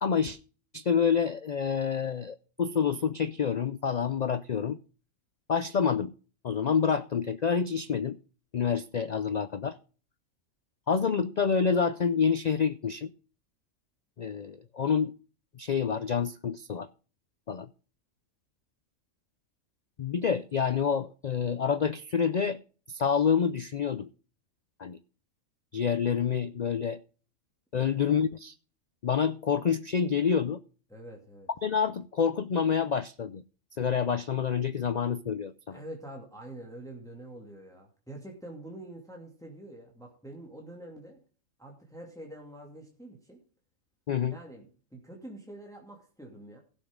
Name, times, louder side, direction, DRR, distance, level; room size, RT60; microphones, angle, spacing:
voice 1, 0.0-0.4 0.7-4.8 5.5-6.1 6.4-8.2 8.5-9.8 10.9-13.1 14.2-15.1 15.5-16.9 17.5-17.7 20.0-22.6 22.9-24.1 24.8-25.0 25.7-27.0 27.7-28.5 29.0-30.6 31.6-33.4 33.8-35.8 44.1-44.4, left 6 dB, 65° left, 0.4 m, -27 dB
voice 2, 30.9-31.5 35.7-41.2 41.6-43.4 44.3-46.6, right 1 dB, ahead, 2.4 m, -46 dB
16.5 x 7.1 x 3.7 m
omnidirectional pair, 1.4 m